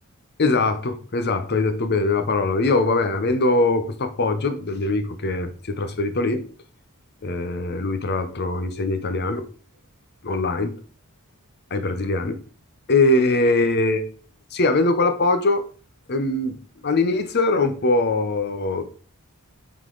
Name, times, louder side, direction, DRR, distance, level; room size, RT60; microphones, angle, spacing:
voice 1, 0.4-6.4 7.2-9.4 10.2-10.7 11.7-12.4 12.9-14.1 14.5-15.6 16.1-16.6 16.8-18.8, left 2 dB, 50° left, 9 dB, 0.8 m, -22 dB
7.9 x 3.9 x 3.9 m, 0.41 s
head